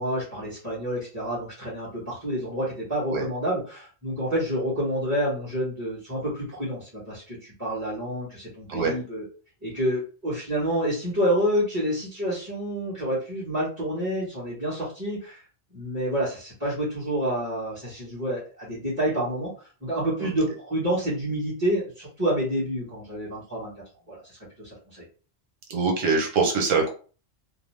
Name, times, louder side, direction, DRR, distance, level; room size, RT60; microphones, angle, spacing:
voice 1, 0.0-9.2 9.6-15.4 15.7-19.5 19.8-23.7 24.1-25.0, equal, 15° right, -9 dB, 1.0 m, -28 dB
voice 2, 25.7-26.9, right 4 dB, 85° right, 2 dB, 1.2 m, -23 dB
2.7 x 2.0 x 3.1 m, 0.38 s
omnidirectional pair, 1.3 m